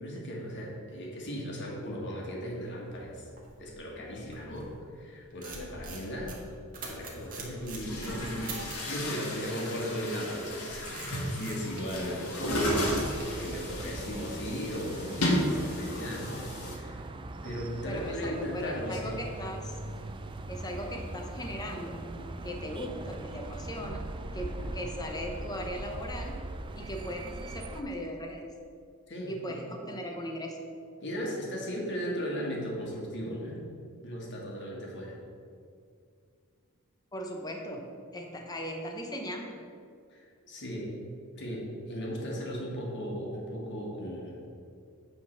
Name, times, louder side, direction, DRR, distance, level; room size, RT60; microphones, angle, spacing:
voice 1, 0.0-3.2 3.6-4.7 4.9-6.3 6.8-17.1 17.4-19.2 24.6-24.7 29.1-29.6 31.0-33.7 34.0-35.2 40.1-40.9 41.3-44.4, equal, 55° left, -2 dB, 1.7 m, -37 dB
sound 1, 2.5-4.8 5.2-8.9 10.2-14.7, right 3 dB, 40° right, 1.5 m, -45 dB
Chatter / Gurgling / Tap, 6.8-6.9 7.6-16.7, equal, 85° left, 1.6 m, -33 dB
sound 2, 12.4-27.8, right 2 dB, 20° right, 0.3 m, -41 dB
voice 2, 17.8-19.8 20.5-22.0 22.4-24.0 24.3-26.4 26.7-28.4 29.3-30.6 37.1-39.5, equal, 20° left, 2 dB, 0.8 m, -38 dB
9.0 x 3.8 x 6.4 m, 2.3 s
head